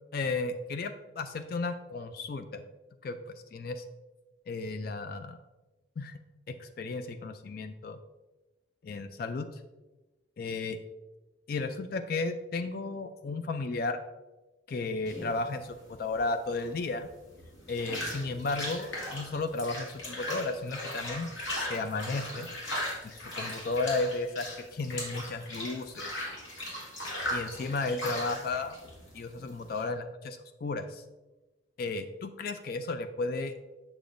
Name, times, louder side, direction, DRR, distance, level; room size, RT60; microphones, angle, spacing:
voice 1, 0.1-2.6 3.0-3.8 4.5-5.4 6.0-6.2 6.5-8.0 8.8-9.5 10.4-10.8 11.5-14.0 14.7-17.1 17.7-22.5 23.0-26.1 27.3-28.7 29.1-31.0 31.8-33.5, left 3 dB, 50° left, 9 dB, 0.3 m, -34 dB
sound 1, 15.1-29.8, left 1 dB, 80° left, 2.1 m, -38 dB
7.2 x 6.8 x 2.5 m, 1.1 s
head